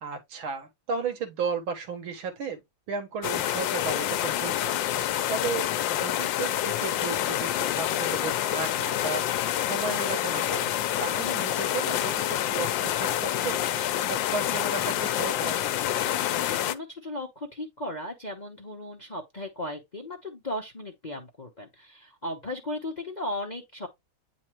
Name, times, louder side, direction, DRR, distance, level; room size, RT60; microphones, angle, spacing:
voice 1, 0.0-2.6 2.9-4.8 5.3-9.3 9.6-13.6 14.1-15.6, right 5 dB, 85° right, 2.2 m, -34 dB
sound 1, 3.2-16.7, left 12 dB, 75° left, 1.3 m, -27 dB
voice 2, 16.0-23.9, left 1 dB, 35° left, 0.7 m, -36 dB
8.8 x 4.1 x 3.0 m
omnidirectional pair, 2.2 m